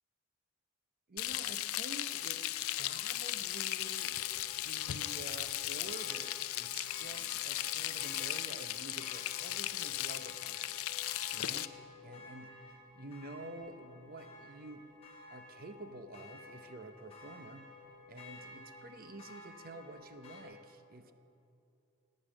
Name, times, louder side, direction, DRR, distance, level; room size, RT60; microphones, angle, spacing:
voice 1, 1.1-4.2 4.6-10.7 11.3-14.9 15.3-17.7 18.1-21.1, right 2 dB, 40° right, 10 dB, 0.8 m, -49 dB
Frying (food), 1.2-11.7, left 14 dB, 70° left, 0.5 m, -37 dB
sound 1, 1.9-20.4, left 3 dB, 25° left, 2.7 m, -54 dB
18.0 x 9.6 x 7.3 m, 2.8 s
head